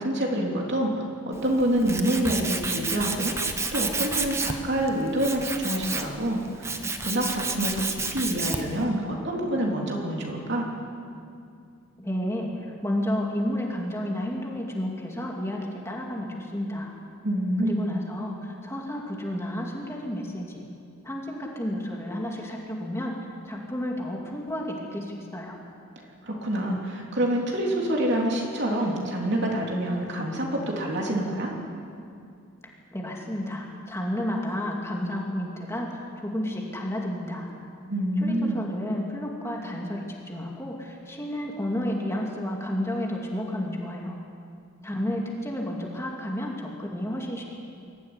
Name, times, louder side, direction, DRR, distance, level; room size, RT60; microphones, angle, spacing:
voice 1, 0.0-3.3 3.7-6.4 7.0-10.7 17.2-17.9 26.2-31.5 37.9-38.6, right 1 dB, 55° right, -1 dB, 3.5 m, -27 dB
Tools, 1.3-8.8, right 3 dB, 15° right, 1.0 m, -31 dB
voice 2, 12.0-16.9 17.6-20.6 21.0-23.1 23.4-25.6 32.9-35.9 36.2-37.5 38.2-44.2 44.8-47.4, left 1 dB, 15° left, -1 dB, 2.5 m, -31 dB
22.5 x 14.5 x 9.8 m, 2.5 s
head